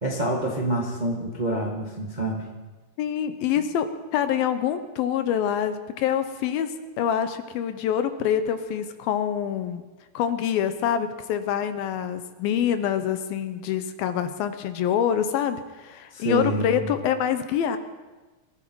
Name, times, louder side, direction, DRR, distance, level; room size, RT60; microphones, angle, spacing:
voice 1, 0.0-2.4 16.1-16.8, right 1 dB, 90° right, -1 dB, 0.4 m, -27 dB
voice 2, 3.0-9.8 10.1-17.8, left 9 dB, 75° left, 10 dB, 2.4 m, -26 dB
22.5 x 14.0 x 4.7 m, 1.2 s
omnidirectional pair, 4.7 m